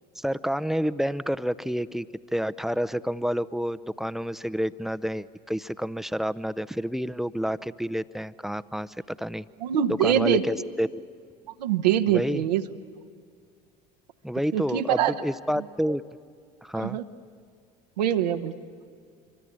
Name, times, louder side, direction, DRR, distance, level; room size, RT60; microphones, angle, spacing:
voice 1, 0.2-2.1 2.3-9.5 10.0-10.9 12.1-12.4 14.2-16.0 16.6-17.0, equal, ahead, 13 dB, 0.6 m, -29 dB
voice 2, 9.6-10.4 11.6-12.6 14.5-15.2 16.7-17.0 18.0-18.6, right 10 dB, 80° right, 7 dB, 1.0 m, -24 dB
24.5 x 24.5 x 8.8 m, 2.1 s
hypercardioid pair, 65°, 21 cm